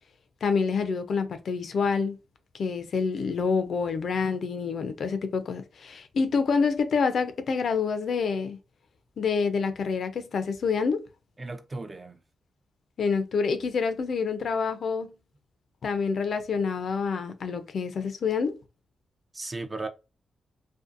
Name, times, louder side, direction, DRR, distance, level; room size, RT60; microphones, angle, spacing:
voice 1, 0.4-2.2 2.6-8.6 9.2-11.0 13.0-15.1 15.8-18.6, left 5 dB, 65° left, 0.4 m, -27 dB
voice 2, 11.4-12.2 19.3-19.9, right 2 dB, 30° right, 0.4 m, -36 dB
2.6 x 2.2 x 2.4 m
cardioid pair, 70°, 0 cm